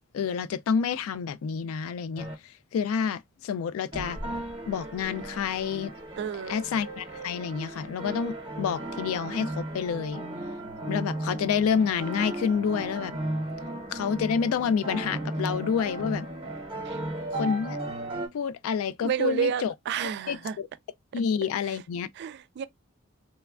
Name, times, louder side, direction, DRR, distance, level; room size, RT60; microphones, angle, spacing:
voice 1, 0.1-4.2 4.7-5.9 6.5-10.2 10.8-13.2 13.9-16.3 17.3-17.8 18.3-19.7 20.0-20.7 21.1-22.1, left 6 dB, 75° left, 0.3 m, -28 dB
sound 1, 2.2-2.3 3.9-18.3, right 1 dB, 25° right, 0.8 m, -35 dB
voice 2, 6.2-6.6 16.9-17.0 19.0-20.6 21.1-21.2 22.2-22.7, right 7 dB, 55° right, 0.3 m, -30 dB
3.1 x 2.2 x 2.3 m
head